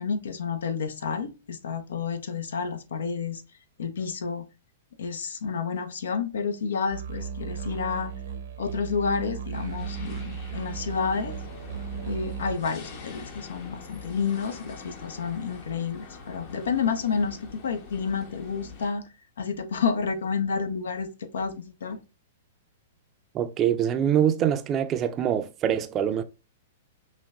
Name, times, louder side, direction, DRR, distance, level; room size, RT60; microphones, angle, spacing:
voice 1, 0.0-3.4 3.8-4.5 5.0-8.1 8.6-11.3 12.0-19.1 19.4-22.0, left 5 dB, 75° left, 0.6 m, -30 dB
sound 1, 6.9-12.6, right 7 dB, 70° right, 0.8 m, -35 dB
sound 2, 9.5-18.9, left 4 dB, 50° left, 1.1 m, -44 dB
voice 2, 23.3-26.2, right 9 dB, 30° right, 0.5 m, -24 dB
5.8 x 2.2 x 2.3 m
hypercardioid pair, 115°, 0 cm